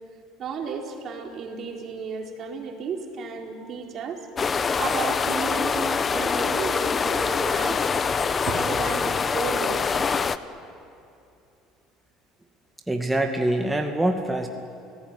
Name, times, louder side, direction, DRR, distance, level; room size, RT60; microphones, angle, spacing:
voice 1, 0.4-4.3 4.8-7.9 8.5-10.0, right 5 dB, 50° right, 2 dB, 4.3 m, -33 dB
sound 1, 4.4-10.4, left 5 dB, 35° left, 1.1 m, -24 dB
voice 2, 12.9-14.5, right 1 dB, 10° right, 3 dB, 2.3 m, -24 dB
30.0 x 17.5 x 9.8 m, 2.6 s
hypercardioid pair, 75°, 0 cm